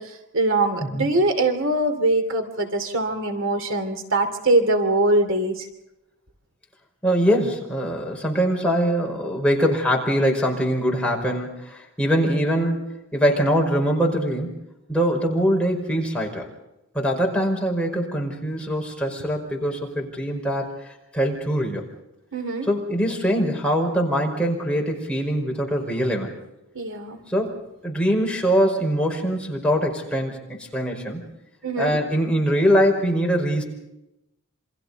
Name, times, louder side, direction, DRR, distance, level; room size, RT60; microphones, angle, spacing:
voice 1, 0.0-5.7 22.3-22.7 26.7-27.2 31.6-32.0, right 2 dB, 60° right, 6 dB, 2.9 m, -22 dB
voice 2, 7.0-14.6 14.9-16.5 16.9-21.9 22.7-26.3 27.3-27.6 27.8-31.2 31.8-33.6, equal, 5° left, 0 dB, 5.0 m, -23 dB
28.5 x 25.5 x 4.1 m, 0.89 s
head